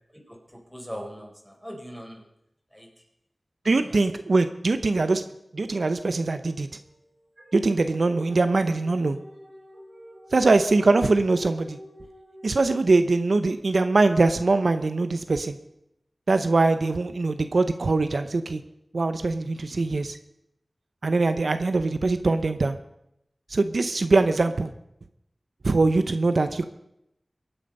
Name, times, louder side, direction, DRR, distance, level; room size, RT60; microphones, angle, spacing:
voice 1, 0.1-2.2 2.7-2.9 3.8-4.0, equal, 5° left, -1 dB, 4.6 m, -40 dB
voice 2, 3.6-5.2 5.5-6.7 7.5-9.2 10.3-11.8 12.4-15.6 16.3-18.6 18.9-20.2 21.0-22.8 23.5-24.7 25.6-26.6, right 3 dB, 75° right, 10 dB, 0.7 m, -22 dB
sound 1, 6.7-13.1, left 1 dB, 50° right, 3.1 m, -46 dB
23.0 x 8.9 x 5.4 m, 0.82 s
wide cardioid pair, 65°, 0 cm